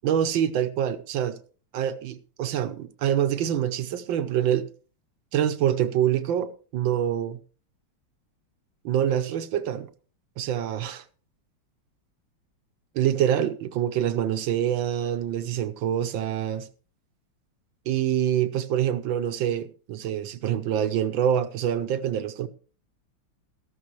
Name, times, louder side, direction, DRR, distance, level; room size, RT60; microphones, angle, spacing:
voice 1, 0.0-1.4 1.7-4.7 5.3-7.4 8.8-9.9 10.4-11.0 12.9-16.7 17.9-22.5, right 10 dB, 70° right, 1.5 m, -25 dB
14.0 x 12.5 x 3.1 m
omnidirectional pair, 2.3 m